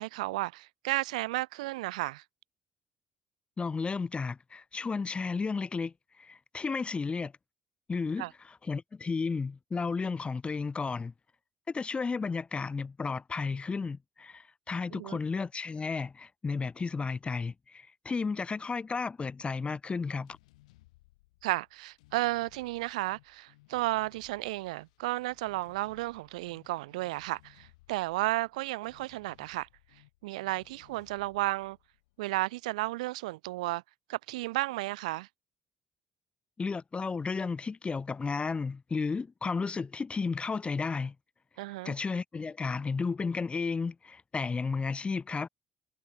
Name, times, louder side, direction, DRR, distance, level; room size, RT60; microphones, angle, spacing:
voice 1, 0.0-2.2 8.2-8.3 14.9-15.2 21.4-29.7 30.2-31.8 32.2-33.8 34.1-35.3 41.6-41.9, right 19 dB, 90° right, 0.5 m, -33 dB
voice 2, 3.6-7.3 7.9-11.1 11.7-20.4 36.6-41.1 41.8-45.5, left 4 dB, 30° left, 0.5 m, -33 dB
sound 1, 20.0-32.8, left 20 dB, 90° left, 4.3 m, -62 dB
hypercardioid pair, 60°, 4 cm